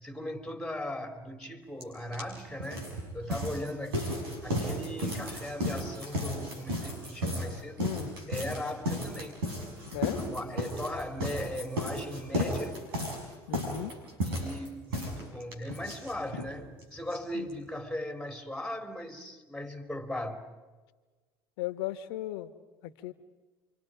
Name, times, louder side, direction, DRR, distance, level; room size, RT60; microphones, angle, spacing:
voice 1, 0.0-7.9 8.3-9.5 10.2-12.8 14.2-20.5, left 1 dB, 5° left, 3.7 m, -38 dB
sound 1, 1.8-1.9 2.1-16.5 16.8-16.9 17.1-17.2 17.5-17.6, equal, 85° right, 6.3 m, -34 dB
voice 2, 7.8-8.1 9.9-10.2 13.5-13.9 17.3-17.5 21.6-22.5 22.8-23.1, left 13 dB, 75° left, 1.5 m, -36 dB
29.5 x 25.5 x 5.2 m
hypercardioid pair, 75°, 12 cm